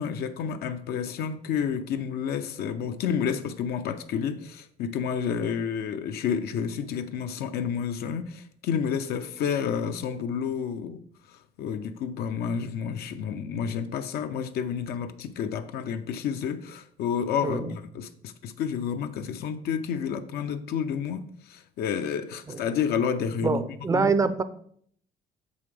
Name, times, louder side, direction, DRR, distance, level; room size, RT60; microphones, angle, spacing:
voice 1, 0.0-11.0 11.3-23.7 23.9-24.1, left 7 dB, 70° left, 0.5 m, -30 dB
voice 2, 23.4-24.4, right 4 dB, 20° right, 0.4 m, -24 dB
6.7 x 5.4 x 3.3 m
cardioid pair, 110°, 17 cm